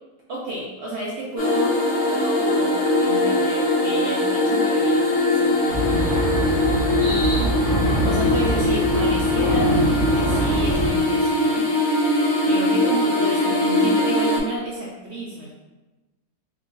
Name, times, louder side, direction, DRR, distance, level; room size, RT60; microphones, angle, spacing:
voice 1, 0.3-6.2 7.0-7.6 8.0-9.8 10.1-12.1 12.5-15.5, right 1 dB, 70° right, -4 dB, 0.6 m, -31 dB
sound 1, 1.4-14.4, left 1 dB, 65° left, 1.3 m, -21 dB
sound 2, 5.7-10.9, right 1 dB, 5° left, 0.5 m, -24 dB
3.5 x 2.8 x 2.5 m, 1.1 s
omnidirectional pair, 1.6 m